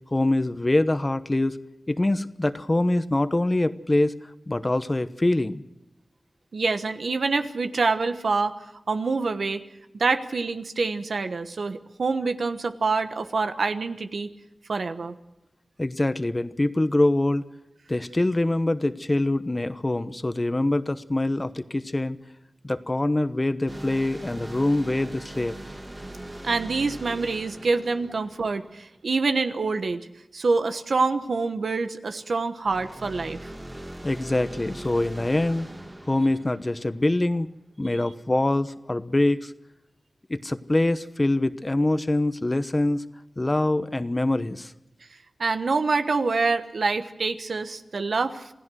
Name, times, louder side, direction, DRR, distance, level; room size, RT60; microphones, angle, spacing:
voice 1, 0.1-1.6 1.9-4.2 4.5-5.6 15.8-17.4 17.9-22.2 22.6-25.5 34.0-35.7 36.1-37.5 37.8-39.5 40.3-43.0 43.4-44.7, left 2 dB, 30° left, 12 dB, 1.0 m, -24 dB
voice 2, 6.5-8.5 8.9-9.6 9.9-14.3 14.7-15.2 26.4-30.0 30.3-33.4 45.4-48.5, right 4 dB, 80° right, 9 dB, 1.2 m, -26 dB
sound 1, 23.7-29.1 32.6-37.4, right 1 dB, 30° right, 2.2 m, -41 dB
27.5 x 16.0 x 6.4 m, 0.91 s
wide cardioid pair, 60°, 0 cm